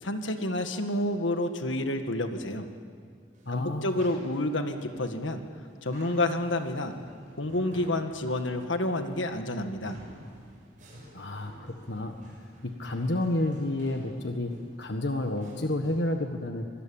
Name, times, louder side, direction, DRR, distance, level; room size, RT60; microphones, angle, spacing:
voice 1, 0.0-2.7 3.5-5.4 5.8-6.9 7.4-10.0, left 1 dB, 85° left, 7 dB, 1.8 m, -29 dB
sound 1, 3.3-16.2, equal, 40° right, 7.0 m, -52 dB
voice 2, 3.4-4.0 11.1-12.2 12.6-16.7, left 1 dB, 65° left, 5 dB, 1.4 m, -30 dB
25.5 x 20.5 x 8.8 m, 2.3 s
head